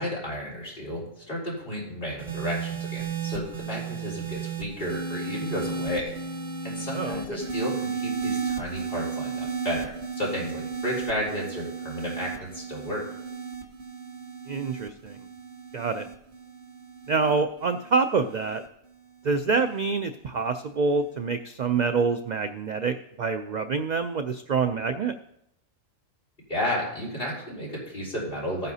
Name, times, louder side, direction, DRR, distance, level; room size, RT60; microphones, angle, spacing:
voice 1, 0.0-6.1 6.6-9.9 10.2-13.1 26.5-28.7, equal, 45° left, -4 dB, 4.2 m, -32 dB
sound 1, 2.2-18.7 19.6-19.9, right 5 dB, 55° right, 1.7 m, -34 dB
voice 2, 14.5-15.2 15.7-16.1 17.1-18.6 19.2-25.1, right 4 dB, 80° right, 9 dB, 0.4 m, -26 dB
15.5 x 9.6 x 2.8 m, 0.78 s
omnidirectional pair, 1.3 m